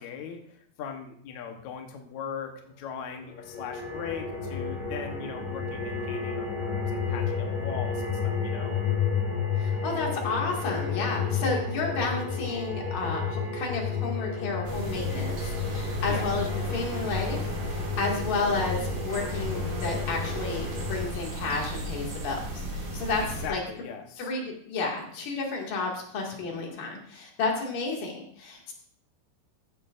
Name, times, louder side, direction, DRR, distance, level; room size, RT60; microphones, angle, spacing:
voice 1, 0.0-8.8 16.1-16.3 23.2-24.3, left 7 dB, 75° left, 3 dB, 1.7 m, -39 dB
sound 1, 3.2-21.0, left 6 dB, 35° left, 3.3 m, -31 dB
voice 2, 9.6-23.2 23.5-23.6 24.2-28.7, left 3 dB, 55° left, -1 dB, 3.6 m, -31 dB
sound 2, 14.6-23.5, right 2 dB, 45° right, 3.4 m, -35 dB
14.5 x 11.0 x 2.6 m, 0.63 s
omnidirectional pair, 4.9 m